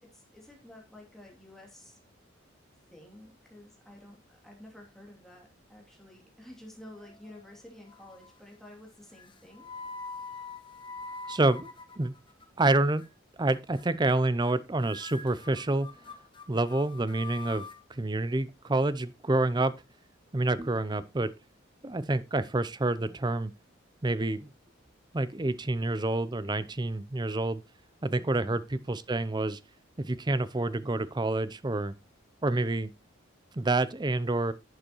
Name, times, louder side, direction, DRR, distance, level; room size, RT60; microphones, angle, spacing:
voice 1, 0.0-2.0 2.9-9.7 28.3-28.6 32.0-32.1, left 1 dB, ahead, 2.7 m, -51 dB
sound 1, 6.9-7.5 7.9-8.4 9.1-12.4 12.7-13.1 13.5-13.8 14.1-14.2 14.4-14.5 14.8-17.8, left 4 dB, 25° left, 1.0 m, -44 dB
voice 2, 11.3-11.7 12.0-12.1 12.6-13.0 13.4-15.9 16.5-19.7 20.3-21.3 21.8-23.5 24.0-24.5 25.1-27.6 28.0-29.6 30.0-31.9 32.4-32.9 33.6-34.5, right 2 dB, 20° right, 0.5 m, -28 dB
11.0 x 7.8 x 3.0 m
head